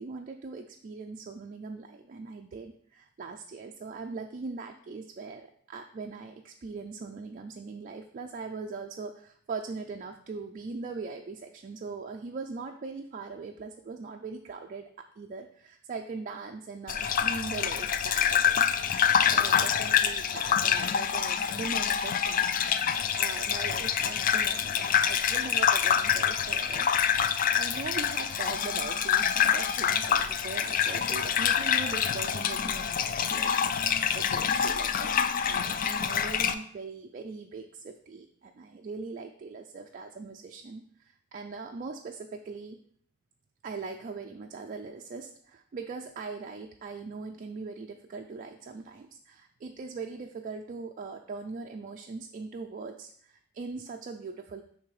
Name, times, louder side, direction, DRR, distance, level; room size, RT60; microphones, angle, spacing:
voice 1, 0.0-22.5 23.2-27.2 27.5-35.1 35.4-42.8 43.6-54.6, right 4 dB, 40° right, 3 dB, 0.4 m, -41 dB
Gurgling / Bathtub (filling or washing), 16.9-36.5, left 8 dB, 45° left, 0.3 m, -26 dB
9.7 x 3.3 x 3.2 m, 0.63 s
head